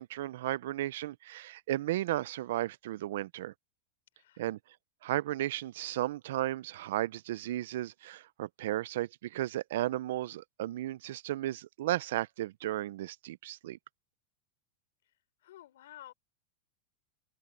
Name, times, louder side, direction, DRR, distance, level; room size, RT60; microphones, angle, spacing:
voice 1, 0.0-3.5 4.4-4.6 5.0-13.8, right 14 dB, 65° right, 0.5 m, -34 dB
voice 2, 15.4-16.1, left 13 dB, 80° left, 4.6 m, -51 dB
supercardioid pair, 170°, 0 cm